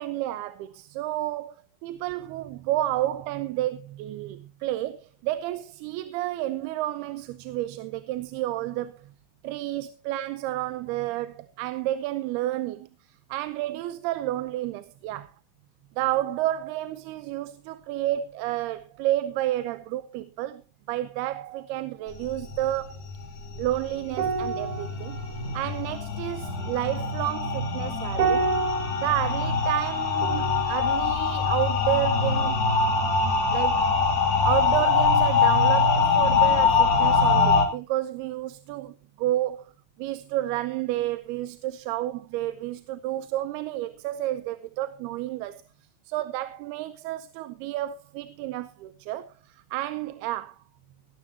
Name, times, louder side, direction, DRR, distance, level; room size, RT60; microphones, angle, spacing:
voice 1, 0.0-9.1 9.4-12.9 13.3-15.3 16.0-20.6 20.9-23.0 23.6-25.2 25.5-28.5 29.0-32.6 33.5-33.9 34.5-39.7 40.0-45.6 46.1-50.6, right 14 dB, 80° right, 2.7 m, -30 dB
sound 1, 22.1-37.6, left 5 dB, 45° left, 3.7 m, -24 dB
sound 2, 24.1-32.8 33.1-33.4, right 6 dB, 60° right, 2.5 m, -33 dB
18.5 x 13.5 x 2.8 m
omnidirectional pair, 4.6 m